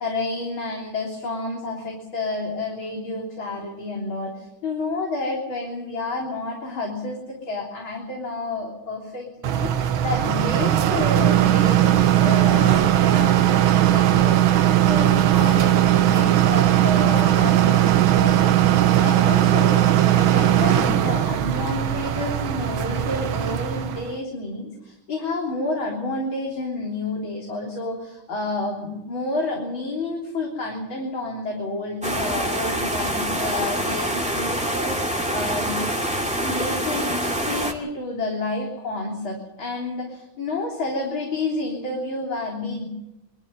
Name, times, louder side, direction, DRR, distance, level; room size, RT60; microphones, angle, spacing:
voice 1, 0.0-17.9 18.2-35.8 36.4-42.8, left 2 dB, 80° left, -1 dB, 4.4 m, -30 dB
sound 1, 9.4-24.1, right 12 dB, 85° right, 1.8 m, -18 dB
sound 2, 32.0-37.7, right 1 dB, 5° right, 2.3 m, -25 dB
23.5 x 13.5 x 9.6 m, 0.93 s
omnidirectional pair, 2.2 m